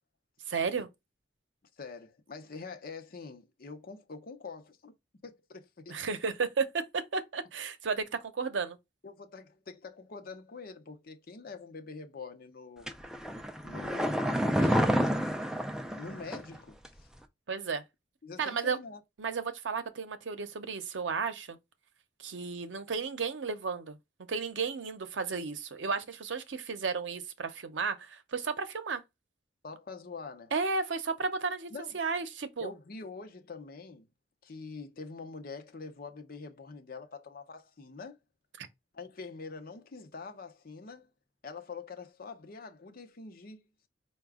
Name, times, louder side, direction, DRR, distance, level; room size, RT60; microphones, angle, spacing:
voice 1, 0.5-0.9 5.9-8.8 17.5-17.8 18.4-18.8 19.2-21.6 22.2-24.0 24.3-29.0 30.5-32.7 38.6-38.7, right 5 dB, 90° right, 0.6 m, -33 dB
voice 2, 1.8-4.9 5.2-6.0 9.0-12.9 13.6-15.2 15.9-16.8 18.2-19.0 29.6-30.5 31.7-32.0 32.6-34.1 34.4-38.2 38.9-41.1 41.4-43.7, left 4 dB, 55° left, 0.7 m, -45 dB
sound 1, 12.9-16.6 16.8-16.9, equal, 5° right, 0.4 m, -29 dB
4.8 x 2.2 x 3.5 m
head